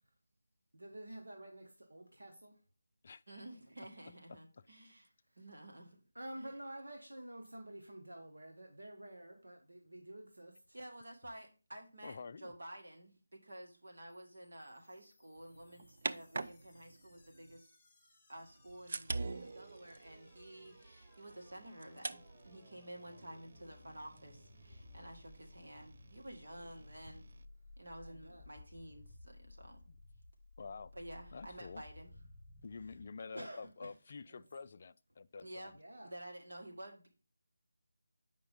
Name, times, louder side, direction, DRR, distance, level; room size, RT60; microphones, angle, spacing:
voice 1, 0.7-2.6 6.1-10.8 26.5-27.2 28.0-28.4 33.3-33.9 34.3-34.4 35.7-36.1, right 1 dB, 90° right, 1.2 m, -50 dB
voice 2, 3.3-5.1 5.4-6.0 6.4-6.5 10.7-17.8 18.3-27.3 27.8-29.8 30.9-32.1 35.4-35.7 36.0-37.1, right 1 dB, 70° right, 1.9 m, -51 dB
voice 3, 12.0-12.5 29.9-30.0 30.6-30.9 31.3-31.8 32.6-35.8, left 4 dB, 40° left, 0.3 m, -48 dB
sound 1, 14.1-33.1, left 2 dB, 10° left, 1.1 m, -60 dB
sound 2, 15.4-17.6 18.4-27.4, right 3 dB, 50° right, 0.4 m, -47 dB
7.9 x 5.2 x 3.6 m
figure-of-eight pair, 165°, 0 cm